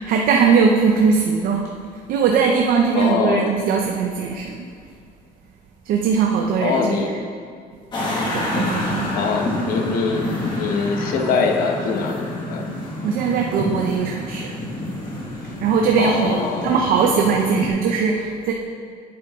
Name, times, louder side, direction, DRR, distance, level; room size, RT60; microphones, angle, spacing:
voice 1, 0.1-1.7 2.1-4.7 5.9-7.0 8.3-9.2 13.0-14.5 15.6-18.5, right 5 dB, 65° right, 1 dB, 0.7 m, -20 dB
voice 2, 2.9-3.5 6.6-7.3 9.1-12.6 16.0-16.8, left 4 dB, 70° left, 3 dB, 1.2 m, -23 dB
sound 1, 7.9-17.7, left 1 dB, 30° left, 2.0 m, -28 dB
11.0 x 8.7 x 3.7 m, 2.2 s
cardioid pair, 175°, 16 cm